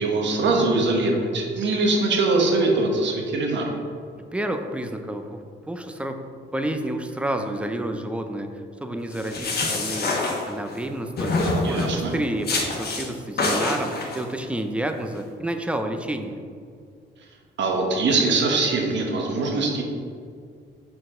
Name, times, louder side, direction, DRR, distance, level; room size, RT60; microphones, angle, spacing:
voice 1, 0.0-3.7 11.6-12.1 17.6-19.8, right 3 dB, 65° right, 1 dB, 1.1 m, -22 dB
voice 2, 4.2-10.2 10.5-16.4, right 1 dB, 5° right, 6 dB, 0.5 m, -30 dB
sound 1, 9.1-10.8 11.2-12.0 12.4-13.1 13.4-14.2, left 2 dB, 55° left, 1.2 m, -25 dB
6.2 x 4.6 x 3.7 m, 2.2 s
cardioid pair, 90°, 20 cm